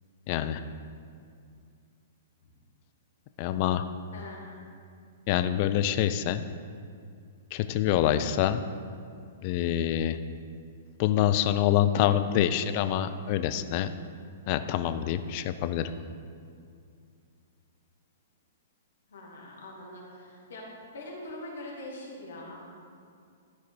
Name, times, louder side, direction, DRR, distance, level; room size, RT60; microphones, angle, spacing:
voice 1, 0.3-0.6 3.4-3.8 5.3-6.4 7.5-8.6 9.4-10.2 11.0-13.9 14.5-15.9, left 11 dB, 40° left, 10 dB, 0.5 m, -26 dB
voice 2, 4.1-4.6 19.1-22.7, left 1 dB, 65° left, -3 dB, 2.1 m, -43 dB
13.0 x 4.8 x 4.5 m, 2.3 s
figure-of-eight pair, 110°, 0 cm